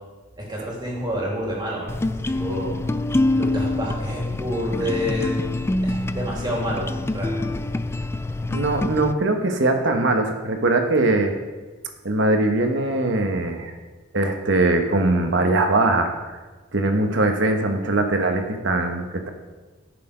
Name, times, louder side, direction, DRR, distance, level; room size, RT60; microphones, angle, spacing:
voice 1, 0.4-1.9 2.4-2.8 3.3-5.4 5.8-7.6, equal, 20° right, -4 dB, 3.0 m, -28 dB
sound 1, 1.9-9.1, left 2 dB, 15° left, 0.3 m, -25 dB
voice 2, 8.5-11.3 12.0-13.7 14.1-16.1 16.7-19.3, right 2 dB, 65° right, 5 dB, 1.3 m, -21 dB
13.0 x 6.8 x 5.1 m, 1.3 s
head